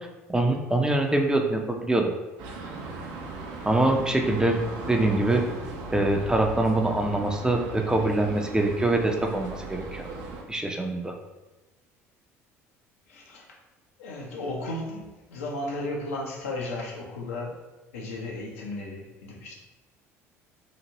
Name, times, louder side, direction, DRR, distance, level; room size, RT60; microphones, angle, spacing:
voice 1, 0.3-2.1 3.7-4.6 4.9-5.4 5.9-10.1 10.5-11.1, right 2 dB, 10° right, 2 dB, 0.4 m, -24 dB
sound 1, 2.4-10.4, right 3 dB, 60° right, 0.5 m, -38 dB
voice 2, 13.1-13.5 14.0-17.6 17.9-19.6, left 2 dB, 80° left, -1 dB, 0.6 m, -34 dB
2.9 x 2.5 x 2.8 m, 1.1 s
hypercardioid pair, 65°, 8 cm